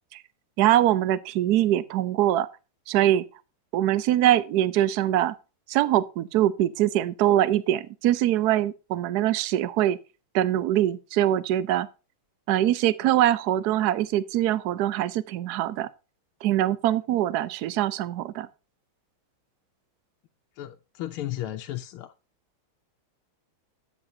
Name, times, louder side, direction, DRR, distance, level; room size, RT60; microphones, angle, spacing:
voice 1, 0.6-2.5 2.9-3.2 3.7-5.3 5.7-10.0 10.3-11.9 12.5-15.9 16.4-18.5, right 12 dB, 75° right, 0.9 m, -23 dB
voice 2, 20.5-22.1, left 13 dB, 85° left, 1.5 m, -34 dB
12.5 x 8.1 x 2.7 m
omnidirectional pair, 2.3 m